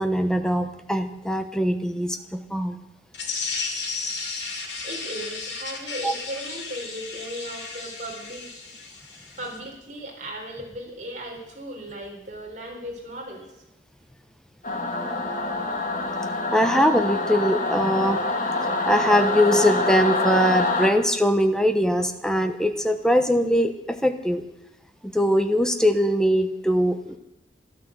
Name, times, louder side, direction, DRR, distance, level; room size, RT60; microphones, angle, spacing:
voice 1, 0.0-2.8 6.0-6.1 16.5-18.2 18.8-24.4 25.0-27.2, equal, 5° left, 7 dB, 1.1 m, -22 dB
sound 1, 3.1-9.6, left 4 dB, 75° left, 3.4 m, -34 dB
voice 2, 4.8-8.5 9.4-13.6 16.0-16.1, right 1 dB, 45° right, 0 dB, 4.1 m, -37 dB
Singing / Musical instrument, 14.6-20.9, left 2 dB, 45° left, 2.0 m, -25 dB
12.5 x 12.5 x 7.8 m, 0.87 s
head